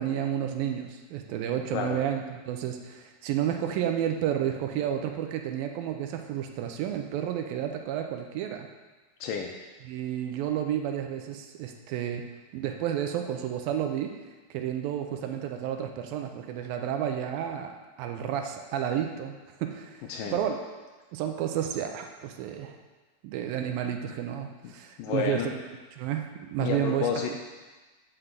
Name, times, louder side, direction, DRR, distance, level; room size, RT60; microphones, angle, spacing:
voice 1, 0.0-8.7 9.8-14.1 14.5-17.7 18.0-19.4 19.6-20.6 21.1-22.8 23.2-25.6 25.9-27.4, right 10 dB, 80° right, 5 dB, 2.4 m, -31 dB
voice 2, 9.2-9.6 20.1-20.4 24.6-24.7 25.0-25.5 26.6-27.4, left 7 dB, 80° left, 3 dB, 2.1 m, -30 dB
8.1 x 5.9 x 7.9 m, 1.3 s
omnidirectional pair, 4.3 m